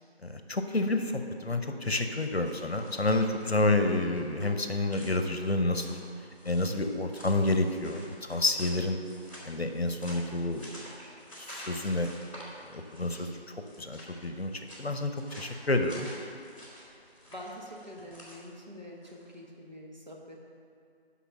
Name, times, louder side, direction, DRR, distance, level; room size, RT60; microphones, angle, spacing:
voice 1, 0.2-6.0 6.4-8.0 8.3-9.0 9.4-10.8 11.4-12.1 12.7-16.1, left 2 dB, 70° left, 6 dB, 0.9 m, -29 dB
sound 1, 1.8-19.4, equal, 30° left, 2.4 m, -50 dB
voice 2, 17.3-20.4, equal, 45° right, -2 dB, 1.2 m, -45 dB
8.1 x 5.7 x 6.2 m, 2.5 s
figure-of-eight pair, 175°, 32 cm